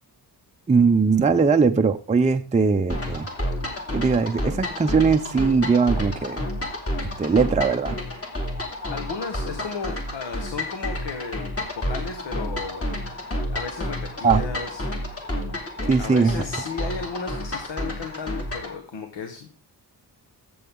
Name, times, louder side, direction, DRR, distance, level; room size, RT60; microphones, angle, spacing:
voice 1, 0.7-3.3 3.9-6.4 7.2-8.0 14.2-14.4 15.9-16.4, right 5 dB, 15° right, 0.5 m, -20 dB
sound 1, 2.9-18.8, left 1 dB, 35° left, 2.7 m, -30 dB
voice 2, 8.9-12.9 13.5-15.1 15.9-19.5, left 5 dB, 80° left, 1.5 m, -34 dB
13.5 x 7.8 x 3.7 m
wide cardioid pair, 125°, 43 cm